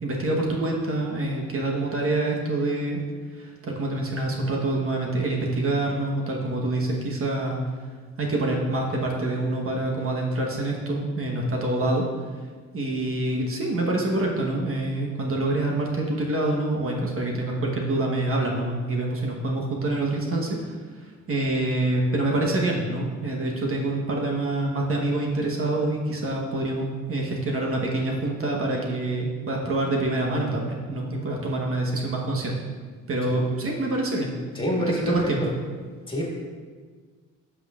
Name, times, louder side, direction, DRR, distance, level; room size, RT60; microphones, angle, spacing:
voice 1, 0.0-3.0 3.3-7.6 8.2-12.0 12.7-32.5 33.1-34.3 34.9-35.4, right 2 dB, 45° right, -1 dB, 1.2 m, -26 dB
voice 2, 34.5-35.3 36.1-36.3, equal, 15° left, -3 dB, 1.9 m, -27 dB
11.0 x 6.2 x 2.5 m, 1.5 s
cardioid pair, 90°, 30 cm